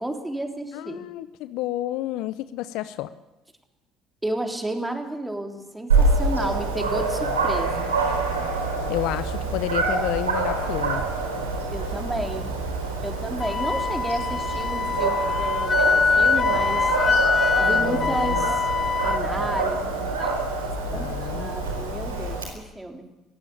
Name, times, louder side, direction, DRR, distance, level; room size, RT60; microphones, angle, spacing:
voice 1, 0.0-1.0 4.2-7.9 11.7-12.5 13.0-16.9 17.6-18.6 19.0-20.5 20.9-23.1, right 1 dB, 10° right, 3 dB, 3.7 m, -32 dB
voice 2, 0.7-3.1 8.9-11.0 17.6-18.5 20.8-21.6, left 15 dB, 65° left, 14 dB, 0.7 m, -30 dB
Dog, 5.9-22.4, right 3 dB, 90° right, 4.1 m, -26 dB
Wind instrument woodwind instrument, 13.4-19.2, left 5 dB, 30° left, 0.6 m, -23 dB
19.0 x 16.0 x 8.7 m, 1.1 s
hypercardioid pair, 60°, 0 cm